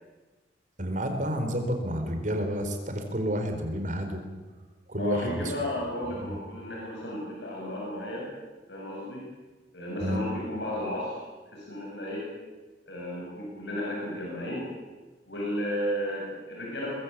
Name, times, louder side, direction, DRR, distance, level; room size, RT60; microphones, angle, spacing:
voice 1, 0.8-4.2 4.9-5.5 6.1-6.4 10.0-10.2, equal, 45° right, 5 dB, 4.4 m, -30 dB
voice 2, 4.9-8.3 8.7-9.3 9.7-11.2 11.5-12.3 12.9-14.7 15.3-16.9, left 1 dB, 75° left, -3 dB, 7.9 m, -33 dB
23.5 x 21.5 x 8.5 m, 1.3 s
head